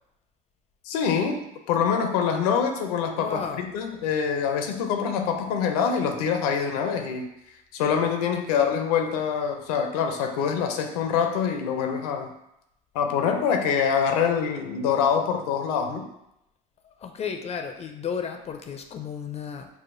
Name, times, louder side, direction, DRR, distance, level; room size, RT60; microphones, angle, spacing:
voice 1, 0.9-1.4 1.7-7.3 7.7-12.3 12.9-16.1, left 7 dB, 90° left, 5 dB, 0.5 m, -25 dB
voice 2, 3.2-3.6 16.8-19.7, left 7 dB, 35° left, 5 dB, 0.4 m, -33 dB
4.8 x 2.2 x 2.5 m, 0.82 s
supercardioid pair, 90°, 19 cm